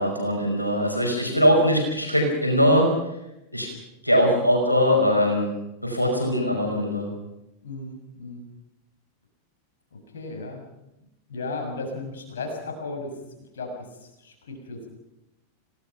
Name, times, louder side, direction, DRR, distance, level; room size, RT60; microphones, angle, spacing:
voice 1, 0.0-2.9 3.5-3.7 4.0-5.5 5.8-7.1, equal, 90° left, 1 dB, 5.5 m, -21 dB
voice 2, 7.6-8.4 9.9-10.6 11.3-13.1 13.5-13.7 14.0-14.9, left 3 dB, 65° left, 3 dB, 6.5 m, -35 dB
30.0 x 18.0 x 5.9 m, 0.90 s
figure-of-eight pair, 90°, 0 cm